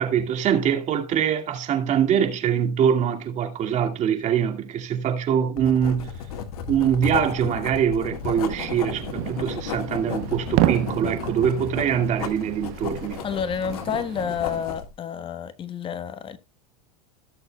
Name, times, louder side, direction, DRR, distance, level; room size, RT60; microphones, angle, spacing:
voice 1, 0.0-6.1 6.7-13.2, right 8 dB, 40° right, 2.3 m, -23 dB
Writing, 5.6-14.9, left 7 dB, 75° left, 1.8 m, -34 dB
sound 1, 8.2-14.6, right 18 dB, 60° right, 0.9 m, -31 dB
voice 2, 13.2-16.4, left 7 dB, 25° left, 1.2 m, -29 dB
17.5 x 6.7 x 2.3 m
hypercardioid pair, 105°, 19 cm